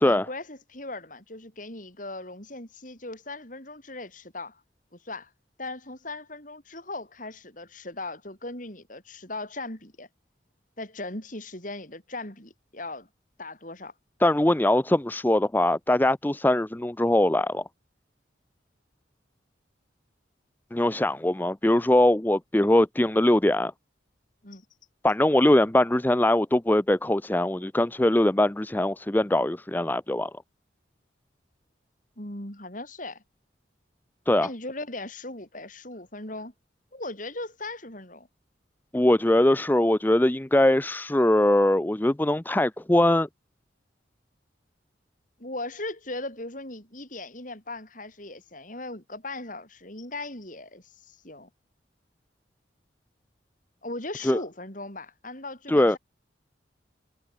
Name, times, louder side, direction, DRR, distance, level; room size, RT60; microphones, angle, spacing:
voice 1, 0.0-4.6 4.9-5.3 5.6-10.1 10.8-13.1 13.4-13.9 24.4-24.6 32.2-33.2 34.3-36.5 36.9-38.3 45.4-51.5 53.8-56.0, left 2 dB, 45° left, 6.7 m, -38 dB
voice 2, 14.2-17.6 20.7-23.7 25.0-30.3 34.3-34.5 38.9-43.3 54.2-54.4 55.7-56.0, left 1 dB, 10° left, 0.5 m, -22 dB
head